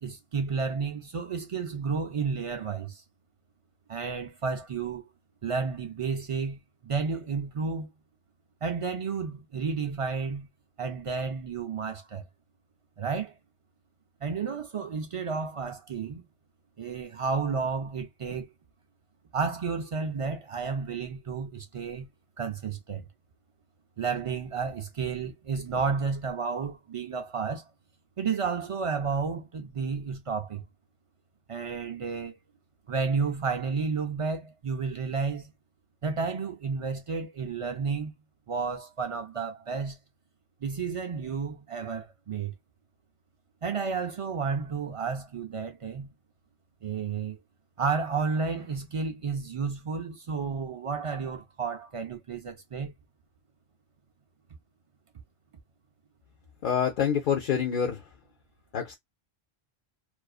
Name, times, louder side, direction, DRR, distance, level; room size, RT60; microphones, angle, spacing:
voice 1, 0.0-3.0 3.9-5.1 5.4-7.9 8.6-10.5 10.8-12.2 13.0-13.3 14.2-16.2 16.8-18.5 19.3-22.1 22.4-23.1 24.0-27.6 28.2-30.6 31.5-32.4 32.9-35.5 36.0-38.1 38.5-40.0 40.6-42.5 43.6-46.1 46.8-47.4 47.8-52.9, right 5 dB, 65° right, 0.3 m, -31 dB
voice 2, 56.6-58.1 58.7-59.0, left 8 dB, 60° left, 0.7 m, -27 dB
2.5 x 2.3 x 2.3 m
omnidirectional pair, 1.1 m